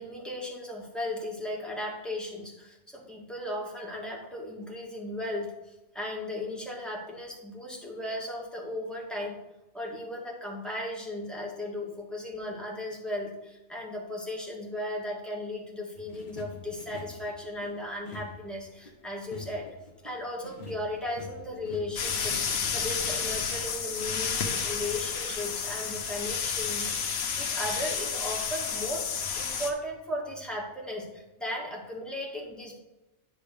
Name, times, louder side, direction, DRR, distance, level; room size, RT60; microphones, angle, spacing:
voice 1, 0.0-9.4 9.7-19.7 20.0-22.4 22.7-32.7, left 1 dB, ahead, -2 dB, 1.7 m, -36 dB
sound 1, 15.9-22.7, left 4 dB, 40° left, 0.8 m, -47 dB
sound 2, 22.0-29.7, left 6 dB, 90° left, 1.3 m, -31 dB
9.9 x 3.6 x 6.7 m, 0.96 s
omnidirectional pair, 1.4 m